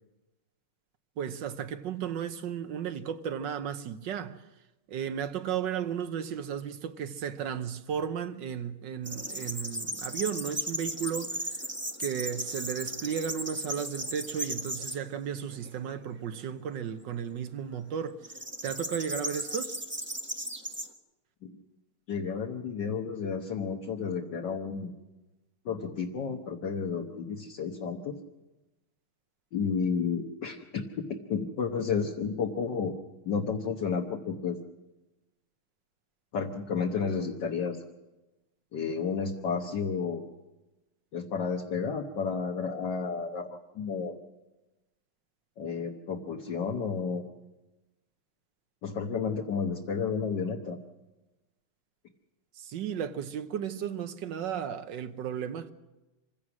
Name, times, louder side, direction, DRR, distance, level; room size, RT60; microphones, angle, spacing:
voice 1, 1.2-4.4 4.9-11.6 12.0-18.2 18.6-19.8 52.6-55.7, right 8 dB, 65° right, 1.5 m, -34 dB
sound 1, 9.0-15.0 15.5-16.0 18.2-20.9, equal, 10° right, 0.8 m, -36 dB
voice 2, 22.1-24.9 25.7-28.2 29.5-32.9 33.3-34.6 36.3-37.8 38.7-40.3 41.1-44.2 45.6-47.2 48.8-50.8, left 5 dB, 60° left, 1.8 m, -32 dB
26.0 x 16.0 x 6.2 m
omnidirectional pair, 2.2 m